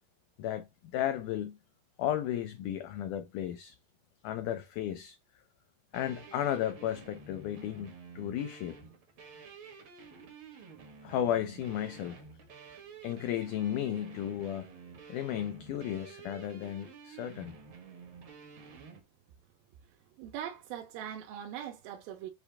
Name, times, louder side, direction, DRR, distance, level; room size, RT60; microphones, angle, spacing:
voice 1, 0.4-1.6 2.0-3.8 4.2-5.4 5.9-8.8 11.0-12.2 13.0-14.7 15.1-17.6, left 11 dB, 90° left, 1.8 m, -34 dB
sound 1, 5.9-19.0, right 5 dB, 70° right, 1.2 m, -51 dB
voice 2, 20.2-22.3, right 10 dB, 85° right, 2.6 m, -41 dB
6.2 x 2.3 x 3.3 m
omnidirectional pair, 4.2 m